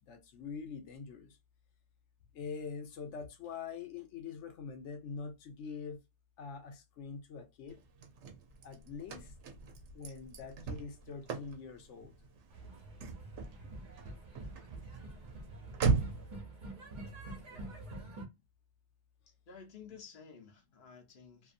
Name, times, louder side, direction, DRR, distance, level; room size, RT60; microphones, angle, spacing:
voice 1, 0.0-1.4 2.3-6.0 6.4-7.8 8.6-9.3 9.9-12.1, left 5 dB, 85° left, 1.0 m, -44 dB
Car / Slam, 7.7-16.4, right 4 dB, 80° right, 1.0 m, -38 dB
sound 1, 12.5-18.2, right 2 dB, 45° right, 1.0 m, -47 dB
voice 2, 17.5-17.8 19.3-21.5, left 6 dB, 50° left, 1.0 m, -54 dB
2.6 x 2.6 x 2.5 m
omnidirectional pair, 1.2 m